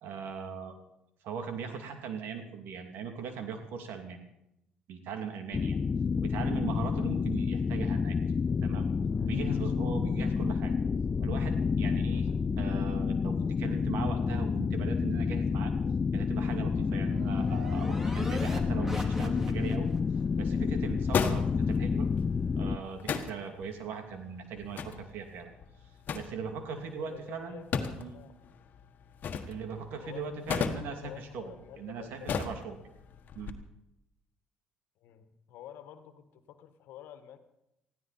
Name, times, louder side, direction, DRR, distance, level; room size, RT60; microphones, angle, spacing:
voice 1, 0.0-0.8 1.2-4.2 4.9-5.8 6.2-8.2 8.6-8.9 9.2-10.7 11.2-12.3 12.6-15.7 16.1-19.9 20.4-22.1 22.6-25.5 26.1-27.6 28.0-28.2 29.5-32.8 33.3-33.5, right 6 dB, 70° right, 5 dB, 2.7 m, -39 dB
sound 1, 5.5-22.8, left 5 dB, 35° left, 0.6 m, -29 dB
sound 2, 16.3-20.0, equal, 10° right, 3.0 m, -41 dB
sound 3, 19.4-33.5, left 6 dB, 55° left, 1.5 m, -38 dB
voice 2, 27.0-28.4 30.0-32.7 35.0-37.4, left 10 dB, 75° left, 10 dB, 1.5 m, -50 dB
19.5 x 15.0 x 4.3 m, 0.86 s
supercardioid pair, 65°, 4 cm